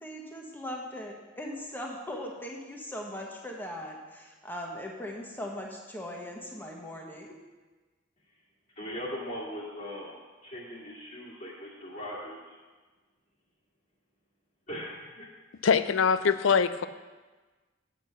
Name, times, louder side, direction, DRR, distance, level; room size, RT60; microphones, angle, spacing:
voice 1, 0.0-7.4, left 1 dB, 10° left, 0 dB, 1.3 m, -39 dB
voice 2, 8.8-12.6 14.7-15.3, equal, 40° left, -8 dB, 1.9 m, -40 dB
voice 3, 15.6-16.9, left 6 dB, 75° left, 13 dB, 0.5 m, -23 dB
8.2 x 8.1 x 5.7 m, 1.3 s
head